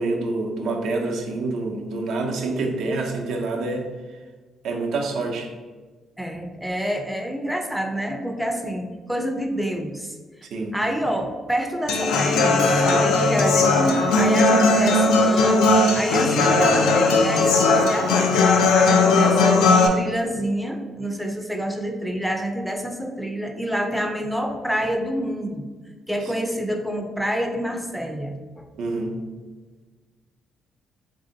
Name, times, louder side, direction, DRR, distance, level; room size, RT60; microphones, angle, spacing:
voice 1, 0.0-3.9 4.6-5.5 10.5-10.8 28.8-29.2, right 3 dB, 80° right, 2 dB, 0.5 m, -27 dB
voice 2, 6.2-10.5 10.7-15.6 15.9-18.4 18.7-25.7 26.1-28.7, equal, ahead, 3 dB, 0.4 m, -27 dB
Human voice / Acoustic guitar, 11.9-19.9, left 3 dB, 90° left, 0.4 m, -18 dB
3.3 x 2.6 x 3.8 m, 1.3 s
cardioid pair, 90°, 0 cm